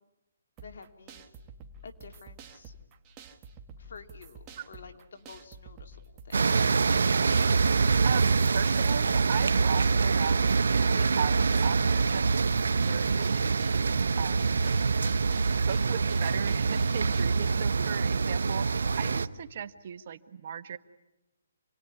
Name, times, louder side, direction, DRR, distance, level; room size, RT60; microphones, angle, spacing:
voice 1, 0.6-1.2 1.8-2.8 3.8-6.0 6.2-6.5, left 4 dB, 65° left, 5 dB, 2.7 m, -49 dB
sound 1, 0.6-17.2, right 4 dB, 25° right, 1.9 m, -49 dB
sound 2, 6.3-19.3, right 4 dB, 80° right, 1.0 m, -25 dB
voice 2, 8.0-12.3 12.7-14.4 15.6-20.8, right 8 dB, 50° right, 11 dB, 1.2 m, -37 dB
28.5 x 20.0 x 9.8 m, 0.98 s
hypercardioid pair, 155°, 0 cm